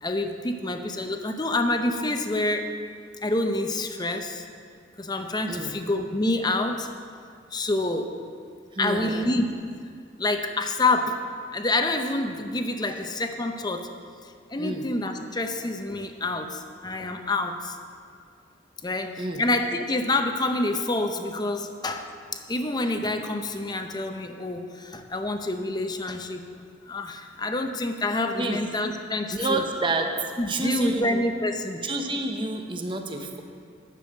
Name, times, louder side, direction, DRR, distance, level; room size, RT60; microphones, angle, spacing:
voice 1, 0.0-2.6 3.2-4.5 5.0-6.9 7.5-8.2 8.8-9.5 10.2-11.2 11.5-13.9 14.2-17.8 18.8-26.4 26.9-29.6 30.4-31.8, left 2 dB, 20° left, 6 dB, 0.7 m, -27 dB
voice 2, 8.7-9.3 14.6-14.9 19.2-19.4 28.4-28.6 29.3-30.1 30.5-31.2 31.8-33.4, right 2 dB, 25° right, 4 dB, 0.9 m, -29 dB
10.5 x 6.9 x 7.6 m, 2.2 s
head